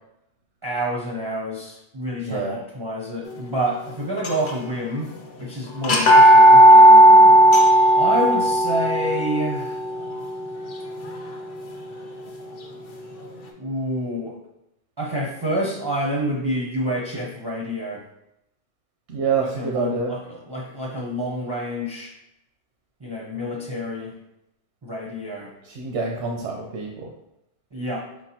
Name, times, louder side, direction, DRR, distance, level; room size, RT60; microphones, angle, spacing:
voice 1, 0.6-5.1 5.4-6.6 7.9-9.8 13.6-14.4 15.0-18.0 19.4-22.1 23.0-24.1 24.8-25.5 27.7-28.1, equal, 30° right, -3 dB, 0.5 m, -28 dB
voice 2, 2.2-2.6 19.1-20.1 25.6-27.1, right 5 dB, 80° right, 0 dB, 0.9 m, -26 dB
sound 1, 4.2-4.8 5.1-5.2 5.8-11.7, right 1 dB, 50° left, 0.7 m, -14 dB
4.6 x 3.9 x 2.8 m, 0.86 s
omnidirectional pair, 1.2 m